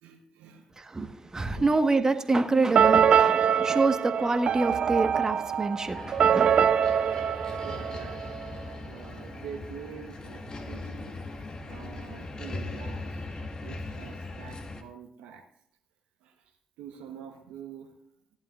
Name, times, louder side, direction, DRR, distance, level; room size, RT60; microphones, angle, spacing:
voice 1, 0.0-0.7 1.5-1.8 3.7-3.8 6.5-6.6 7.6-8.2 8.5-11.1 11.7-13.2 13.6-15.4 16.2-17.9, right 8 dB, 75° right, 1.2 m, -45 dB
voice 2, 0.8-6.7, right 3 dB, 30° right, 1.5 m, -27 dB
sound 1, 2.7-8.5, right 8 dB, 55° right, 0.3 m, -24 dB
sound 2, 5.9-14.8, left 2 dB, 40° left, 1.7 m, -39 dB
16.0 x 11.0 x 2.5 m
hypercardioid pair, 40°, 2 cm